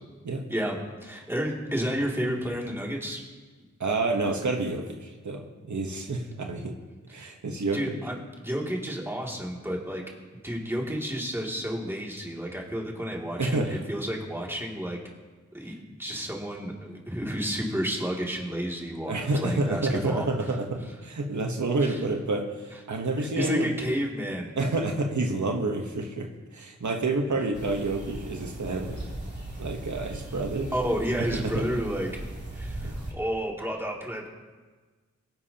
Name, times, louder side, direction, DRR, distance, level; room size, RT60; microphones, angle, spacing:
voice 1, 0.5-3.2 7.7-8.1 8.4-10.0 10.4-15.0 15.5-20.3 21.8-22.0 23.2-24.5 30.7-32.1 32.5-34.3, equal, 10° right, -2 dB, 2.6 m, -31 dB
voice 2, 3.8-6.7 7.1-8.0 13.4-13.9 15.6-15.7 19.1-23.9 24.6-29.0 29.6-30.7 31.3-31.7 32.8-32.9, right 2 dB, 75° right, 3 dB, 1.1 m, -29 dB
sound 1, 27.5-33.1, right 1 dB, 35° right, 2.9 m, -38 dB
22.0 x 10.5 x 2.9 m, 1.4 s
wide cardioid pair, 85°, 29 cm